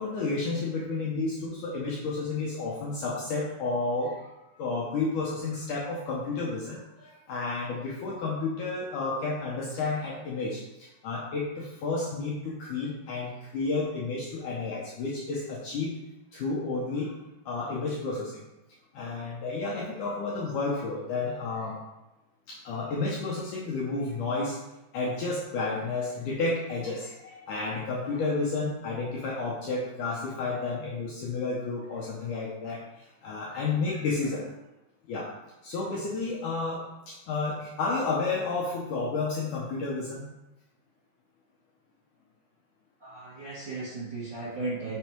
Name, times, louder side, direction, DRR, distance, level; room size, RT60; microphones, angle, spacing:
voice 1, 0.0-16.0 16.3-17.2 17.5-18.4 18.9-21.8 22.5-24.6 24.9-34.5 35.1-35.3 35.6-40.3, left 3 dB, 70° left, -4 dB, 1.9 m, -31 dB
voice 2, 43.0-45.0, right 3 dB, 45° right, -10 dB, 1.4 m, -35 dB
6.1 x 5.3 x 4.5 m, 0.98 s
omnidirectional pair, 4.6 m